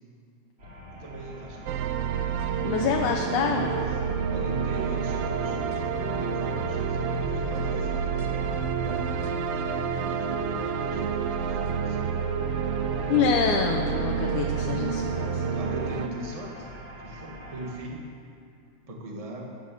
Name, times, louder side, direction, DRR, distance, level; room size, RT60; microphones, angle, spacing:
sound 1, 0.6-17.7, left 2 dB, 40° right, 4.2 m, -43 dB
voice 1, 0.9-1.6 2.4-2.8 3.2-4.0 4.3-9.1 9.6-12.1 15.5-16.7 17.0-18.1 18.9-19.6, right 1 dB, 20° right, -1 dB, 1.1 m, -41 dB
sound 2, 1.7-16.1, right 8 dB, 80° right, 1.3 m, -29 dB
voice 2, 2.6-3.8 13.1-15.4, left 6 dB, 85° left, 1 dB, 2.3 m, -26 dB
Telephone, 2.8-16.1, left 13 dB, 65° left, 1.4 m, -39 dB
15.5 x 9.1 x 7.0 m, 2.6 s
omnidirectional pair, 3.4 m